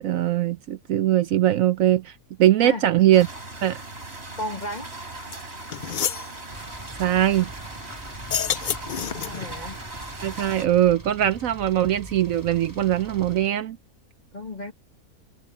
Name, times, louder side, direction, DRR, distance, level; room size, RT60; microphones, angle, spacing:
voice 1, 0.0-3.3 3.6-3.8 7.0-7.5 10.2-13.8, right 12 dB, 70° right, 1.0 m, -21 dB
sound 1, 3.1-10.7, right 2 dB, 40° right, 4.5 m, -39 dB
voice 2, 4.4-4.9 9.1-9.8 14.3-14.7, left 1 dB, 30° left, 2.0 m, -33 dB
sound 2, 5.3-5.4 5.7-6.3 8.2-9.5, left 8 dB, 90° left, 0.4 m, -28 dB
sound 3, 6.5-13.5, right 1 dB, 10° right, 4.1 m, -43 dB
omnidirectional pair, 1.6 m